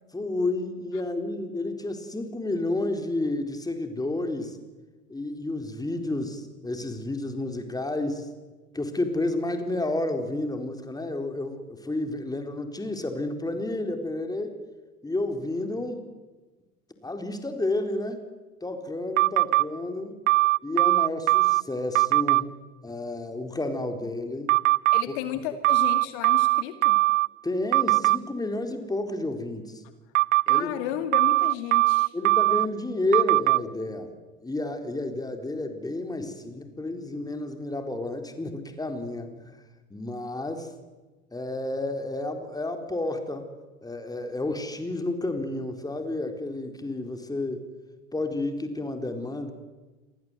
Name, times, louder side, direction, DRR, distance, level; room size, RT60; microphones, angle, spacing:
voice 1, 0.1-4.6 5.1-8.3 8.7-14.5 15.0-16.1 17.0-18.2 18.6-20.2 20.6-22.5 22.8-24.5 27.4-29.8 30.5-30.7 32.1-34.1 34.4-39.6 39.9-40.7 41.3-43.5 43.8-47.6 48.1-49.5, left 2 dB, 10° left, 6 dB, 4.1 m, -31 dB
sound 1, 19.2-19.6 20.3-21.6 21.9-22.4 24.5-25.0 25.6-27.3 27.7-28.2 30.1-30.6 31.1-32.7 33.1-33.6, right 20 dB, 60° right, 0.8 m, -20 dB
voice 2, 24.9-27.0 30.5-32.1, left 11 dB, 55° left, 8 dB, 2.4 m, -33 dB
28.0 x 24.0 x 8.2 m, 1.2 s
figure-of-eight pair, 80°, 44 cm